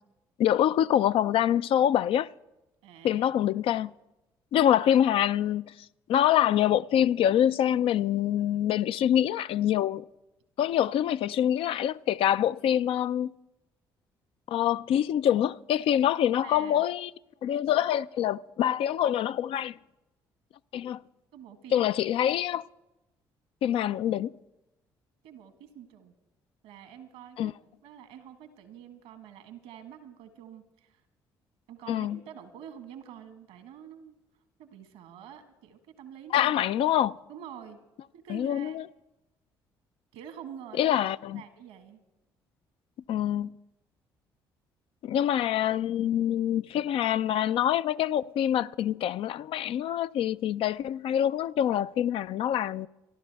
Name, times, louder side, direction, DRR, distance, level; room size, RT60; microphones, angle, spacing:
voice 1, 0.4-2.3 3.0-3.9 4.5-5.7 6.1-10.0 10.6-13.3 14.5-17.1 17.4-19.8 20.7-21.0 21.7-22.6 23.6-24.3 27.4-27.5 31.9-32.2 36.3-37.2 38.3-38.8 40.8-41.4 43.1-43.5 45.0-52.9, left 10 dB, 60° left, 0.4 m, -25 dB
voice 2, 2.8-3.3 16.4-16.8 21.3-21.9 25.2-26.1 26.6-27.5 27.8-31.0 31.7-34.2 34.6-36.5 36.9-37.0 37.3-37.8 38.1-38.8 40.1-42.0, right 9 dB, 80° right, 1.5 m, -47 dB
26.5 x 11.5 x 3.5 m
hypercardioid pair, 50°, 10 cm